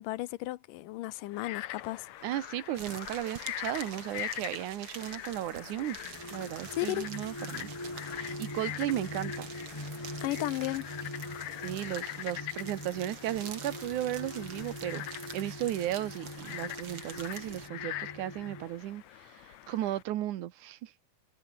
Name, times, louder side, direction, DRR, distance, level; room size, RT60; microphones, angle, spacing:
voice 1, 0.0-2.1 6.8-7.1 10.2-10.9, left 17 dB, 90° left, 2.4 m, -34 dB
Frog, 1.3-20.0, left 14 dB, 70° left, 2.1 m, -43 dB
voice 2, 2.2-6.0 6.3-7.7 8.1-9.5 11.6-19.4 19.7-20.9, right 13 dB, 75° right, 2.5 m, -35 dB
sound 1, 2.7-17.7, right 7 dB, 45° right, 3.0 m, -47 dB
sound 2, 5.9-18.7, left 1 dB, 5° left, 4.1 m, -43 dB
omnidirectional pair, 3.7 m